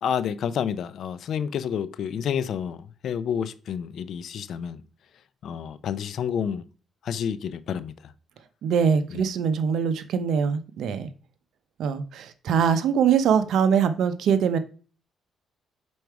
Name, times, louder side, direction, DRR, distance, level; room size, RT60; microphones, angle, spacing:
voice 1, 0.0-2.8 3.0-4.8 5.4-6.6 7.0-7.9 9.1-9.2, left 8 dB, 65° left, 0.5 m, -29 dB
voice 2, 8.6-11.1 11.8-14.6, right 7 dB, 75° right, 0.7 m, -23 dB
5.3 x 4.6 x 4.7 m
cardioid pair, 90°, 0 cm